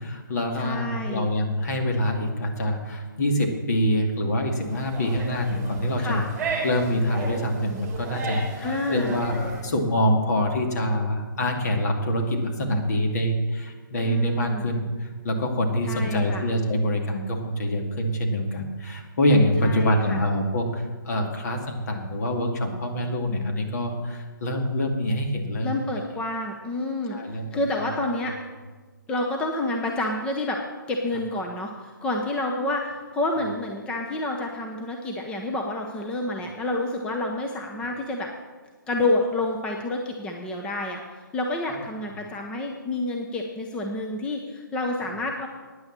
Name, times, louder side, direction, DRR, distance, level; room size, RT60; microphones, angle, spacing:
voice 1, 0.0-6.2 6.6-25.7 27.1-27.5 27.8-27.9, left 1 dB, 50° left, 2 dB, 2.3 m, -25 dB
voice 2, 0.5-1.3 6.0-6.2 8.6-9.1 14.1-14.7 15.8-16.4 19.6-20.2 25.6-28.4 29.1-30.6 30.9-38.3 38.9-45.5, left 2 dB, 10° left, 1 dB, 0.7 m, -29 dB
sound 1, 4.6-9.6, right 4 dB, 15° right, 3.4 m, -34 dB
9.7 x 9.6 x 7.3 m, 1.4 s
hypercardioid pair, 155°, 11 cm